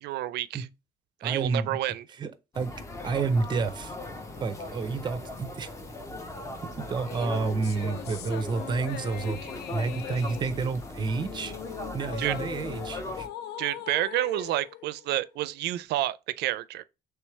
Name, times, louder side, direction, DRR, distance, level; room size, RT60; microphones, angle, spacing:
voice 1, 0.0-0.7 1.2-2.0 12.2-12.4 13.6-16.8, right 15 dB, 85° right, 0.4 m, -29 dB
voice 2, 1.2-1.8 2.2-2.7 3.0-3.9 4.4-5.7 6.8-9.4 9.7-11.5 11.9-13.3, right 4 dB, 25° right, 0.5 m, -30 dB
sound 1, 2.5-13.3, left 2 dB, 20° left, 0.6 m, -39 dB
sound 2, 7.1-15.7, left 10 dB, 85° left, 0.5 m, -41 dB
3.3 x 3.2 x 4.5 m
cardioid pair, 165°, 17 cm